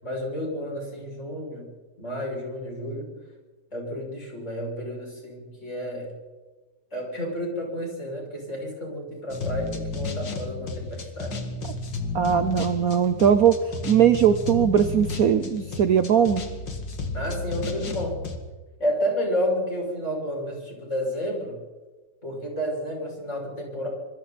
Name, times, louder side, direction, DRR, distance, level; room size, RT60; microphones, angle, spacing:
voice 1, 0.0-1.7 2.0-3.1 3.7-6.1 6.9-11.3 17.1-18.2 18.8-21.6 22.2-23.9, equal, 40° left, -1 dB, 7.1 m, -31 dB
sound 1, 9.3-18.4, left 3 dB, 75° left, 2.7 m, -33 dB
voice 2, 12.1-13.5 13.9-16.4, right 8 dB, 60° right, 10 dB, 1.1 m, -20 dB
26.0 x 24.0 x 4.3 m, 1.3 s
omnidirectional pair, 2.0 m